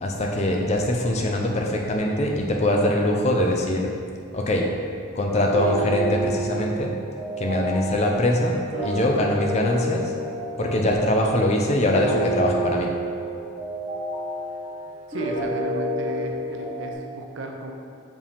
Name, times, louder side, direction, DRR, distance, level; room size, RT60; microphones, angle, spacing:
voice 1, 0.0-3.9 4.3-4.7 5.2-7.0 7.4-10.1 10.6-12.9, left 1 dB, 30° left, 1 dB, 0.5 m, -22 dB
sound 1, 5.5-16.9, right 1 dB, 30° right, 1.3 m, -29 dB
voice 2, 15.1-17.7, right 1 dB, 60° right, 2 dB, 0.6 m, -34 dB
5.4 x 5.0 x 3.5 m, 2.4 s
head